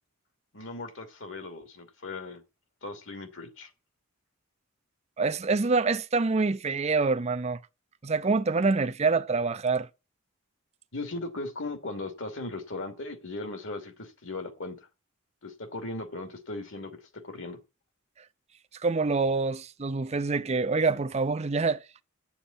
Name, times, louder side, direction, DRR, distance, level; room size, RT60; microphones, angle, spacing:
voice 1, 0.5-2.4 2.8-3.7 10.9-14.9 15.4-17.6, left 2 dB, 65° left, 2.7 m, -38 dB
voice 2, 5.2-7.6 8.0-9.9 18.8-21.8, right 4 dB, 30° right, 0.5 m, -26 dB
9.0 x 7.2 x 8.6 m
head